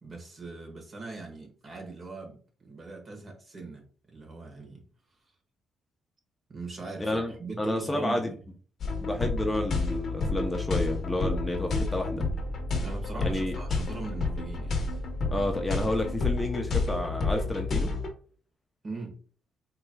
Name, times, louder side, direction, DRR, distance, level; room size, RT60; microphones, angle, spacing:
voice 1, 0.0-4.9 6.5-8.2 12.8-14.8 18.8-19.2, right 3 dB, 40° right, 1.5 m, -41 dB
voice 2, 7.0-8.3 9.0-12.2 13.2-13.5 15.3-17.9, left 1 dB, 15° left, 0.7 m, -30 dB
sound 1, 8.8-18.1, left 3 dB, 50° left, 1.0 m, -30 dB
4.6 x 2.9 x 2.3 m
cardioid pair, 90°, 0 cm